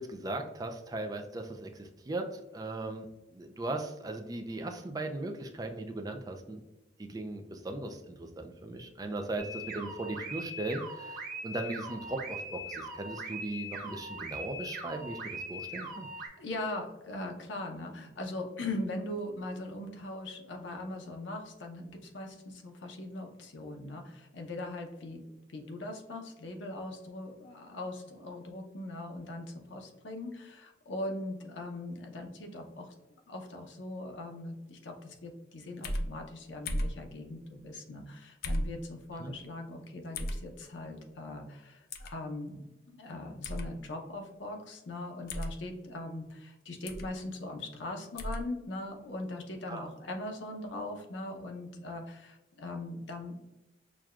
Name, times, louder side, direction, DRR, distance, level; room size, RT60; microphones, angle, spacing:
voice 1, 0.0-6.6 7.0-16.1 39.2-39.3 49.7-49.9, right 2 dB, 20° right, 4 dB, 0.3 m, -38 dB
sound 1, 9.4-16.3, right 1 dB, 45° right, 0.8 m, -41 dB
voice 2, 16.4-25.2 25.5-32.9 33.3-53.4, left 2 dB, 85° left, 3 dB, 0.7 m, -40 dB
sound 2, 35.8-36.1 36.7-37.0 38.4-38.7 40.1-40.4 41.9-42.1 43.4-43.7 45.3-45.5 46.9-47.1 48.2-48.4, equal, 55° left, 0.4 m, -33 dB
6.0 x 2.2 x 2.4 m, 1.0 s
head